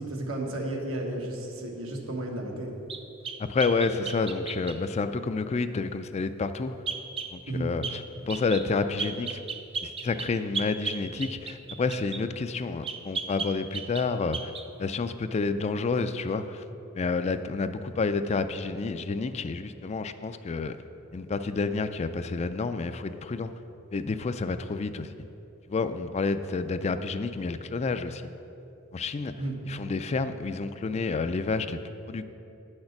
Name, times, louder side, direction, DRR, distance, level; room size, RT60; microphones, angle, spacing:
voice 1, 0.0-2.7 7.5-7.7 29.4-29.5, right 1 dB, 85° right, 0 dB, 1.4 m, -33 dB
sound 1, 2.9-4.8 6.9-7.3 7.8-8.0 8.3-8.7 9.0-12.2 12.8-14.1 14.3-14.7, right 4 dB, 25° right, 0.5 m, -35 dB
voice 2, 3.4-6.7 7.3-9.4 9.8-14.5 14.8-16.6 16.9-20.8 21.1-23.5 23.9-25.1 25.7-28.2 28.9-29.3 29.7-31.8 32.1-32.2, left 4 dB, 30° left, 10 dB, 0.3 m, -29 dB
9.4 x 6.5 x 5.8 m, 2.9 s
head